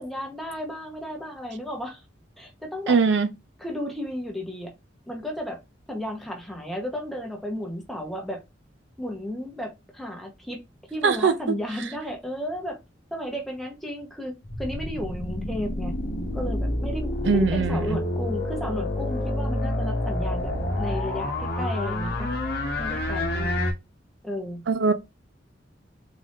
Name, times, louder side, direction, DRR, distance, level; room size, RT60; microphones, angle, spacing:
voice 1, 0.0-2.0 2.4-3.0 3.6-4.7 5.1-5.6 5.9-8.4 9.0-10.6 10.9-12.8 13.1-16.0 16.3-22.3 22.8-23.6 24.2-24.6, left 1 dB, ahead, 0.9 m, -34 dB
voice 2, 2.9-3.3 11.0-11.3 17.3-18.0 24.7-24.9, right 4 dB, 65° right, 0.4 m, -21 dB
sound 1, 14.4-23.7, left 1 dB, 55° left, 0.9 m, -28 dB
3.9 x 2.6 x 3.5 m
head